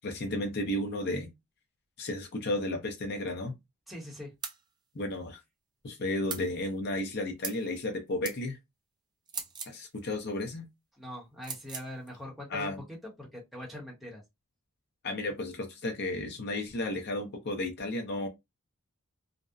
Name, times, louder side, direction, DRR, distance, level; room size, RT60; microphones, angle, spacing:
voice 1, 0.0-1.3 2.0-3.5 4.9-5.4 5.8-8.6 9.7-10.7 12.5-12.8 15.0-18.3, left 1 dB, 50° left, 0.5 m, -33 dB
voice 2, 3.9-4.3 11.0-12.7 13.2-14.2, left 1 dB, ahead, 0.8 m, -42 dB
sound 1, 4.4-4.6 6.3-6.5 7.4-7.6 8.2-8.4 9.3-9.8 11.4-11.9, right 6 dB, 20° right, 0.3 m, -38 dB
2.6 x 2.0 x 2.3 m
head